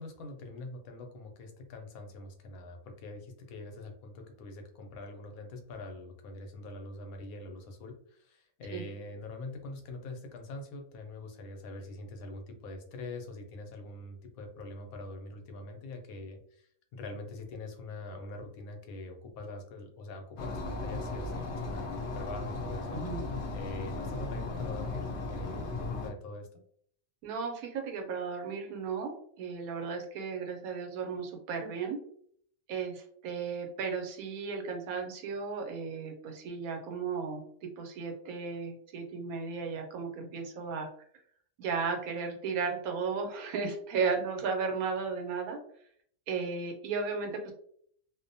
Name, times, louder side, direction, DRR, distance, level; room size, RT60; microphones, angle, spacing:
voice 1, 0.0-21.9 22.1-23.0 23.5-26.5, left 2 dB, 85° left, 4 dB, 1.1 m, -44 dB
sound 1, 20.4-26.1, left 2 dB, 65° left, 0.7 m, -36 dB
voice 2, 22.9-23.2 27.2-32.0 32.7-40.9 41.6-45.6 46.3-47.5, right 5 dB, 90° right, 3 dB, 1.1 m, -35 dB
2.6 x 2.1 x 2.6 m, 0.63 s
omnidirectional pair, 1.5 m